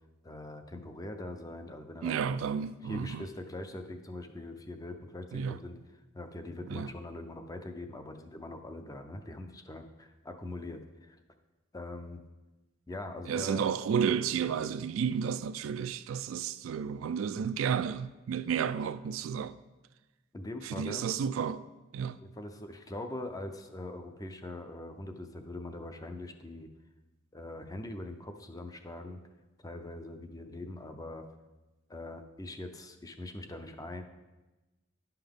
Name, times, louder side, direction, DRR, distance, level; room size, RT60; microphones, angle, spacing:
voice 1, 0.2-2.3 2.8-5.8 6.1-11.2 11.7-12.2 12.9-13.6 20.3-21.0 22.2-26.7 27.3-29.2 29.6-31.3 31.9-34.0, left 2 dB, 15° left, 0.5 m, -42 dB
voice 2, 2.0-3.3 5.3-5.6 6.7-6.9 13.3-19.6 20.6-21.7 21.9-22.2, right 7 dB, 65° right, 0.3 m, -32 dB
10.5 x 5.7 x 3.5 m
head